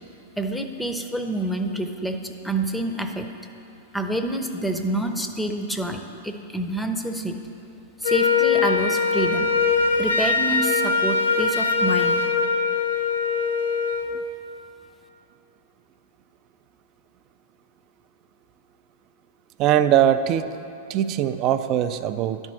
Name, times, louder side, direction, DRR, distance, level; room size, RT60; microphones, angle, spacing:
voice 1, 0.4-3.3 3.9-7.4 8.0-9.5 10.0-12.3, right 1 dB, 5° left, 5 dB, 0.6 m, -27 dB
Wind instrument woodwind instrument, 8.0-14.1, left 4 dB, 80° left, 0.6 m, -22 dB
voice 2, 19.6-20.6 20.9-22.4, right 10 dB, 40° right, 11 dB, 0.4 m, -21 dB
11.0 x 4.5 x 6.2 m, 2.7 s
hypercardioid pair, 100°, 0 cm